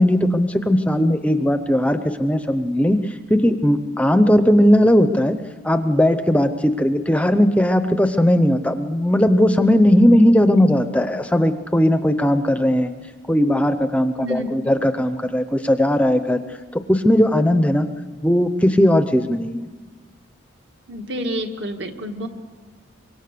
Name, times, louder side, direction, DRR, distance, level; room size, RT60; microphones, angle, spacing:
voice 1, 0.0-3.0 3.3-5.4 5.6-12.9 13.3-16.4 16.7-17.9 18.2-19.7, equal, 5° left, 9 dB, 0.7 m, -17 dB
voice 2, 14.1-14.7 20.9-22.3, equal, 60° right, 4 dB, 2.0 m, -29 dB
24.5 x 24.0 x 6.8 m, 1.5 s
head